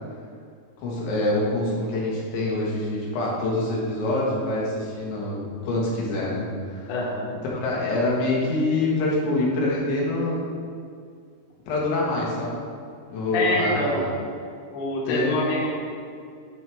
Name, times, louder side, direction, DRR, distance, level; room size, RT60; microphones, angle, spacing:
voice 1, 0.8-6.9 7.4-10.5 11.7-12.6 13.1-14.1 15.1-15.6, left 2 dB, 85° left, -4 dB, 3.8 m, -25 dB
voice 2, 6.9-7.3 13.3-14.1 14.7-15.7, left 1 dB, 60° left, -5 dB, 2.4 m, -25 dB
12.0 x 4.7 x 3.5 m, 2.3 s
omnidirectional pair, 5.0 m